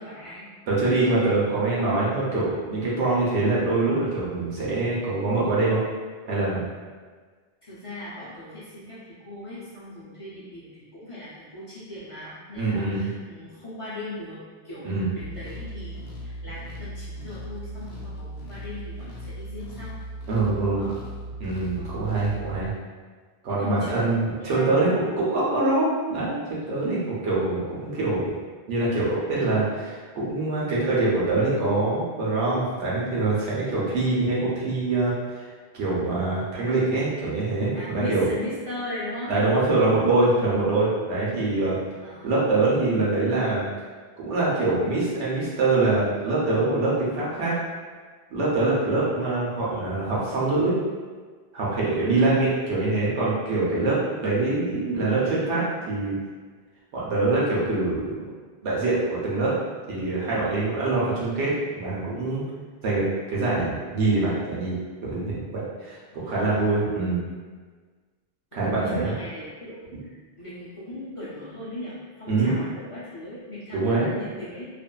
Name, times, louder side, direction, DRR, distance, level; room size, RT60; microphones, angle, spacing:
voice 1, 0.0-0.5 7.6-20.0 20.7-21.0 21.8-22.0 23.5-24.9 37.7-39.3 42.0-42.3 51.9-52.4 66.1-66.7 68.5-74.7, left 1 dB, 35° left, -11 dB, 0.7 m, -38 dB
voice 2, 0.7-5.8 6.3-6.7 12.5-13.1 14.8-15.1 20.3-20.9 21.4-22.7 23.4-28.3 28.7-35.5 35.7-38.3 39.3-41.8 42.2-43.6 44.2-47.6 48.3-50.7 51.5-56.2 56.9-58.2 58.6-59.5 59.9-62.4 62.8-64.8 65.0-66.0 66.2-67.2 68.5-69.1 72.3-72.6 73.7-74.1, right 2 dB, 85° right, -7 dB, 1.1 m, -24 dB
sound 1, 15.2-22.7, equal, 70° left, 0.8 m, -38 dB
2.6 x 2.4 x 2.2 m, 1.5 s
omnidirectional pair, 1.2 m